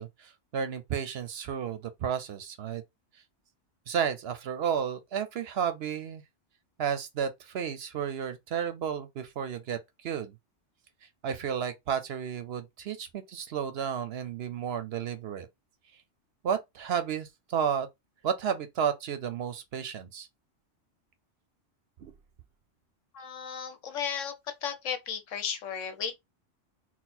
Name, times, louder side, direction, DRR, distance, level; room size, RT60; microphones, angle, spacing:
voice 1, 0.0-2.8 3.9-6.2 6.8-10.3 11.2-15.5 16.4-17.9 18.2-20.3 22.0-22.1, right 8 dB, 65° right, 0.7 m, -32 dB
voice 2, 23.1-24.3 24.6-26.1, left 7 dB, 80° left, 1.2 m, -34 dB
4.1 x 2.2 x 4.1 m
omnidirectional pair, 1.3 m